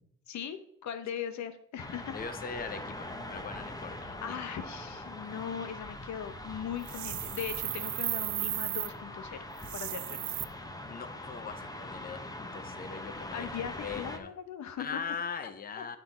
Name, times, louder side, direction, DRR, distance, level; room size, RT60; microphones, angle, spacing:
voice 1, 0.3-2.3 4.0-9.4 9.7-10.4 12.9-15.0 15.4-15.8, left 8 dB, 70° left, 10 dB, 1.0 m, -40 dB
sound 1, 1.8-14.2, left 1 dB, 10° left, 1.1 m, -42 dB
voice 2, 2.1-4.4 10.8-13.5 13.8-14.3 14.8-16.0, left 6 dB, 30° left, 10 dB, 0.8 m, -40 dB
sound 2, 6.8-8.9 9.6-10.4, right 15 dB, 70° right, 0.5 m, -35 dB
12.0 x 4.6 x 4.3 m, 0.73 s
cardioid pair, 90°, 30 cm